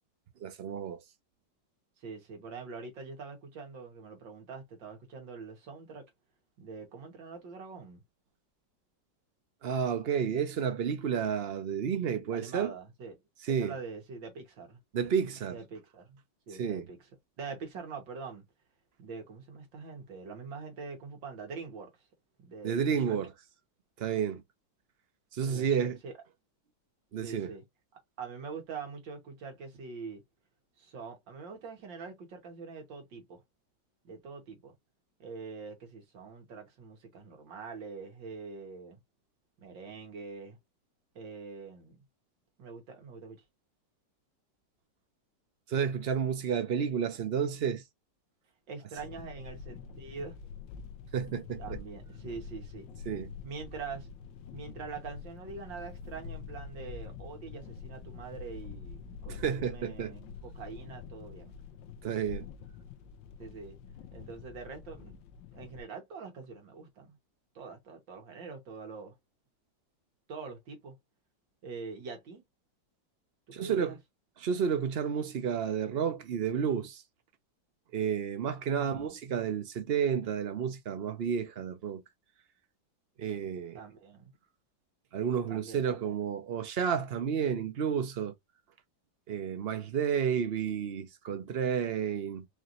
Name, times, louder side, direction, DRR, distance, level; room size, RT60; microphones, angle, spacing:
voice 1, 0.4-1.0 9.6-12.7 13.5-13.7 14.9-15.6 16.6-16.9 22.6-23.3 24.0-24.4 25.3-26.0 27.1-27.5 45.7-47.8 51.1-51.8 53.1-53.3 59.3-60.1 62.0-62.5 73.5-73.9 74.4-77.0 77.9-82.0 83.2-83.8 85.1-88.3 89.3-92.5, right 7 dB, 55° right, 0.6 m, -31 dB
voice 2, 2.0-6.1 6.6-8.0 12.3-13.2 13.5-14.8 15.5-16.2 16.5-17.0 17.4-18.4 19.0-21.9 22.4-23.2 25.4-26.2 27.2-27.6 28.2-30.2 30.8-33.4 34.0-34.7 35.2-39.0 39.6-40.6 41.2-42.0 42.6-43.4 48.7-50.4 51.6-52.9 53.4-54.1 54.5-61.6 63.4-63.8 64.1-65.2 65.6-67.2 67.6-69.1 70.3-71.0 71.6-72.4 73.6-74.0 78.7-79.1 83.7-84.3 85.5-86.2, right 5 dB, 90° right, 2.2 m, -44 dB
sound 1, 49.0-65.8, left 6 dB, 80° left, 1.3 m, -46 dB
4.9 x 2.6 x 3.0 m
omnidirectional pair, 2.0 m